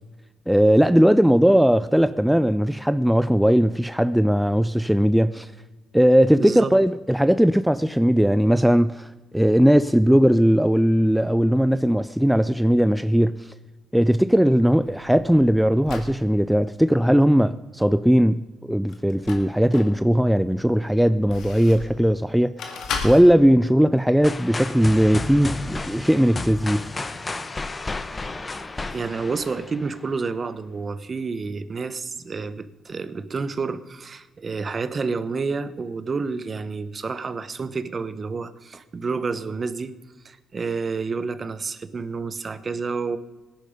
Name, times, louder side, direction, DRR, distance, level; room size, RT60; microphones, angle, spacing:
voice 1, 0.5-5.5 5.9-13.5 13.9-26.9, equal, ahead, 0.3 m, -19 dB
voice 2, 6.4-6.7 28.9-39.9 40.2-43.2, right 4 dB, 35° right, 0.9 m, -29 dB
sound 1, 14.5-16.2 18.9-20.0 20.5-22.0 22.6-23.2, left 5 dB, 75° left, 2.0 m, -34 dB
sound 2, 24.2-30.1, left 3 dB, 25° left, 0.9 m, -32 dB
18.0 x 10.5 x 5.1 m
cardioid pair, 90°, 0 cm